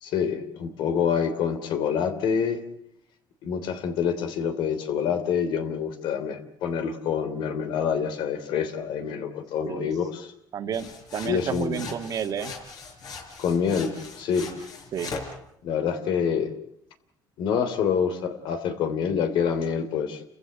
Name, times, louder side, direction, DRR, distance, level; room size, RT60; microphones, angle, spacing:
voice 1, 0.0-2.6 3.4-10.3 11.2-11.8 13.4-14.5 15.6-16.5 17.4-20.2, left 7 dB, 70° left, 10 dB, 3.0 m, -26 dB
voice 2, 10.5-12.5 14.9-15.2, right 8 dB, 50° right, 8 dB, 1.7 m, -31 dB
sound 1, 10.7-15.4, left 4 dB, 50° left, 5.1 m, -40 dB
29.5 x 15.5 x 8.9 m, 0.72 s
cardioid pair, 135°, 8 cm